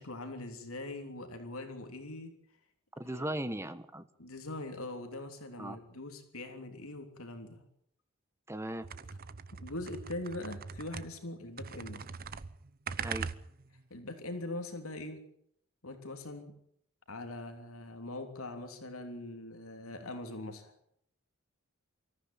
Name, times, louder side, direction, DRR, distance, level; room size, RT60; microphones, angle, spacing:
voice 1, 0.0-2.3 3.0-3.4 4.2-7.6 9.6-12.0 13.9-15.2 15.8-16.5 17.1-20.7, left 2 dB, 75° left, 6 dB, 3.3 m, -42 dB
voice 2, 3.0-4.1 5.6-5.8 8.5-8.9 13.0-13.3, right 1 dB, 10° right, 11 dB, 1.3 m, -37 dB
sound 1, 8.8-11.3 11.6-13.8, right 5 dB, 45° right, 0.8 m, -41 dB
24.0 x 14.5 x 9.4 m, 0.71 s
head